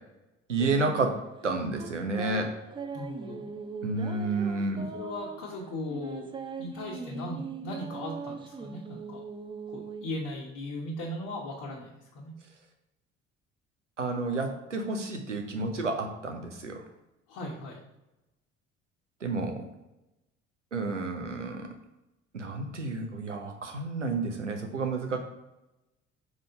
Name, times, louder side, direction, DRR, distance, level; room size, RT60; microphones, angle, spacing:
voice 1, 0.5-2.5 3.8-4.9 14.0-16.8 19.2-19.7 20.7-21.7 22.3-25.2, right 3 dB, 85° right, 4 dB, 0.8 m, -30 dB
sound 1, 0.6-10.3, right 4 dB, 15° right, 0.5 m, -41 dB
voice 2, 2.9-3.5 4.8-6.3 6.6-9.2 9.7-12.3 17.3-17.8, left 1 dB, 55° left, -5 dB, 1.4 m, -38 dB
5.1 x 3.5 x 5.5 m, 0.97 s
figure-of-eight pair, 55°, 35 cm